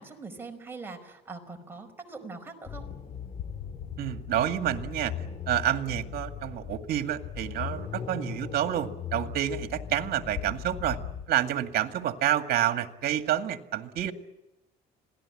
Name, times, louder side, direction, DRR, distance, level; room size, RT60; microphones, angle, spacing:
voice 1, 0.0-2.9, right 3 dB, 15° right, 3 dB, 4.8 m, -42 dB
sound 1, 2.7-12.0, left 7 dB, 40° left, 2.0 m, -40 dB
sound 2, 3.3-11.2, left 8 dB, 75° left, 2.6 m, -44 dB
voice 2, 4.0-5.1 5.5-11.0 11.3-14.1, right 11 dB, 65° right, 7 dB, 2.0 m, -28 dB
26.5 x 18.0 x 9.8 m, 0.92 s
cardioid pair, 110°, 17 cm